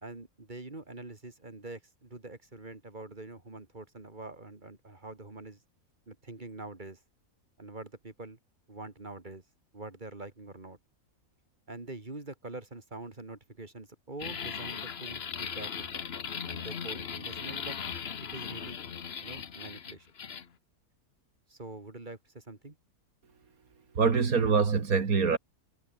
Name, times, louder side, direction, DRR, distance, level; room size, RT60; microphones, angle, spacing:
voice 1, 0.0-5.6 6.1-7.0 7.6-8.4 8.7-9.4 9.7-10.8 11.7-15.9 16.5-17.8 18.2-18.8 19.2-20.1 21.5-22.8, right 2 dB, 30° right, 2.9 m, -45 dB
sound 1, 14.2-20.4, left 7 dB, 50° left, 1.2 m, -38 dB
voice 2, 23.9-25.4, right 5 dB, 80° right, 2.6 m, -24 dB
omnidirectional pair, 1.5 m